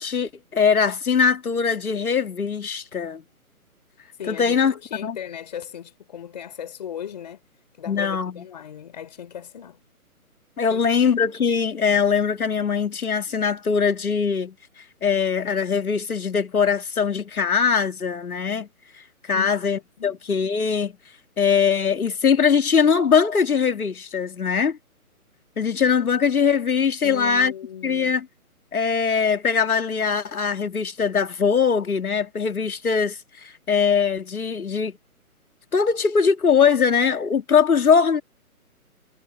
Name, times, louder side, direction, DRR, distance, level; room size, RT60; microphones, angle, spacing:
voice 1, 0.0-3.2 4.3-4.7 5.0-5.2 7.9-8.4 10.6-14.5 15.0-18.7 19.2-20.9 21.4-24.8 25.6-27.5 27.8-28.3 28.7-35.0 35.7-38.2, left 6 dB, 75° left, 2.2 m, -21 dB
voice 2, 4.1-7.4 7.8-9.8 10.7-11.0 19.3-19.5 20.0-20.2 27.0-28.1, left 9 dB, 30° left, 5.4 m, -37 dB
hypercardioid pair, 175°, 44 cm